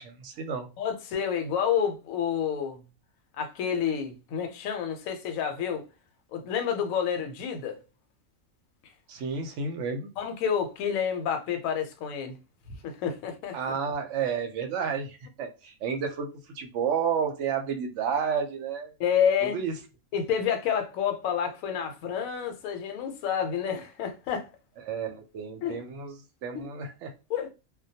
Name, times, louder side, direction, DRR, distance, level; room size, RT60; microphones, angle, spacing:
voice 1, 0.0-0.7 9.1-10.1 13.5-18.9 19.4-19.7 24.8-26.2 26.4-27.1, right 6 dB, 65° right, 0.8 m, -31 dB
voice 2, 0.8-2.8 3.4-5.8 6.3-7.8 10.2-12.4 12.8-13.6 19.0-19.6 20.1-24.5 25.6-25.8 26.5-26.7 27.3-27.5, left 8 dB, 75° left, 0.9 m, -29 dB
2.2 x 2.2 x 2.7 m
omnidirectional pair, 1.5 m